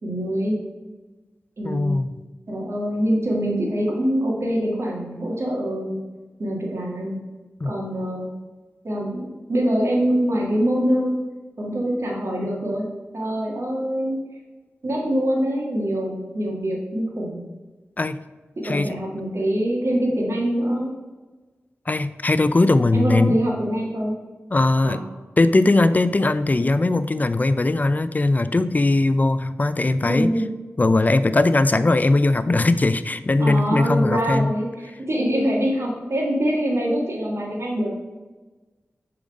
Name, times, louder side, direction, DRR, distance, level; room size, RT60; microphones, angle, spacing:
voice 1, 0.0-0.6 1.6-1.9 2.5-6.0 6.4-7.2 7.6-8.3 8.8-11.2 11.6-12.9 13.1-14.2 14.8-17.4 18.6-20.9 22.9-24.1 24.8-25.0 30.0-30.5 33.4-37.9, equal, 65° right, -2 dB, 1.6 m, -24 dB
voice 2, 1.6-2.2 7.6-7.7 18.0-18.2 18.6-19.0 21.9-23.4 24.5-25.0 25.4-30.3 30.8-34.5, left 2 dB, 35° left, 13 dB, 0.4 m, -19 dB
6.9 x 3.9 x 5.2 m, 1.3 s
wide cardioid pair, 55°, 5 cm